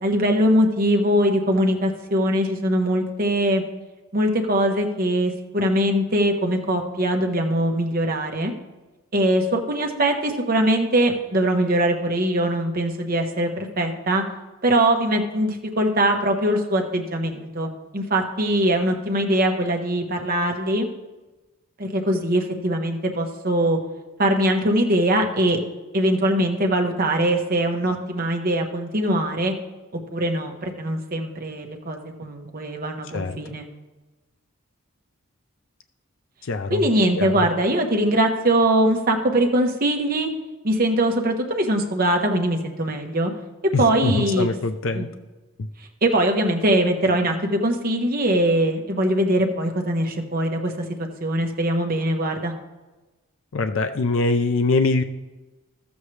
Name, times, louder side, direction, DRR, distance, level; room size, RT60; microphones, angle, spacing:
voice 1, 0.0-3.6 4.1-8.5 9.1-14.2 14.6-20.9 21.8-23.8 24.2-25.6 25.9-29.5 30.1-33.6 36.7-40.3 40.6-43.3 43.6-44.5 44.9-45.1 46.0-50.7 51.0-52.5, right 1 dB, 40° right, 3 dB, 1.0 m, -22 dB
voice 2, 33.1-33.6 36.4-36.9 37.2-37.5 43.7-45.1 45.6-45.7 53.5-55.0, left 3 dB, 60° left, 7 dB, 0.5 m, -23 dB
13.5 x 7.2 x 3.2 m, 1.1 s
head